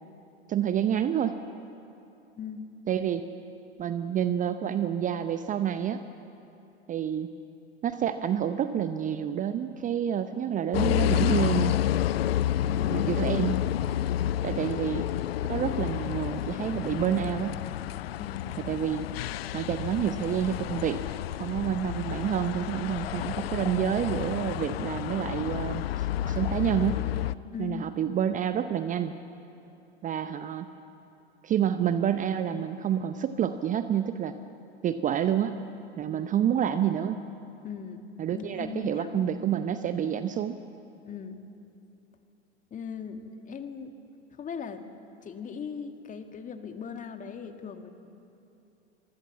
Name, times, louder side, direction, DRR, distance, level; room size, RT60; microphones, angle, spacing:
voice 1, 0.5-1.4 2.9-3.2 3.8-6.0 6.9-7.3 7.8-11.7 12.9-13.5 14.4-15.1 15.5-17.6 18.6-19.1 19.5-21.0 21.4-27.0 27.6-29.1 30.0-30.7 31.4-34.4 34.8-35.6 36.0-37.2 38.2-40.6, right 9 dB, 25° right, 11 dB, 0.8 m, -28 dB
voice 2, 2.4-2.7 12.4-13.1 18.2-18.6 27.5-27.9 37.6-38.0 38.3-39.3 41.0-41.4 42.7-44.0 44.3-44.8 45.2-47.9, left 7 dB, 25° left, 7 dB, 1.8 m, -39 dB
sound 1, 10.7-27.3, left 12 dB, 60° left, 0.6 m, -30 dB
25.5 x 22.5 x 7.3 m, 2.8 s
figure-of-eight pair, 85°, 34 cm